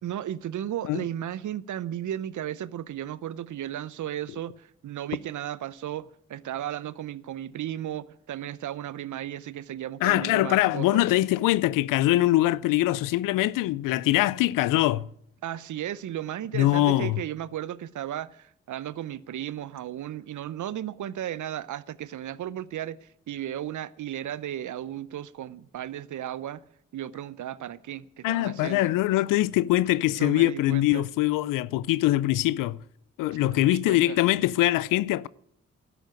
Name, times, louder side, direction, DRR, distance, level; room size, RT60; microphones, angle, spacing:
voice 1, 0.0-11.0 15.4-26.6 26.9-29.0 30.2-31.1 33.3-34.2, right 11 dB, 70° right, 0.7 m, -35 dB
voice 2, 10.0-15.1 16.5-17.2 28.2-32.8 33.2-35.3, left 16 dB, 90° left, 0.5 m, -23 dB
11.5 x 8.0 x 9.1 m
supercardioid pair, 40°, 31 cm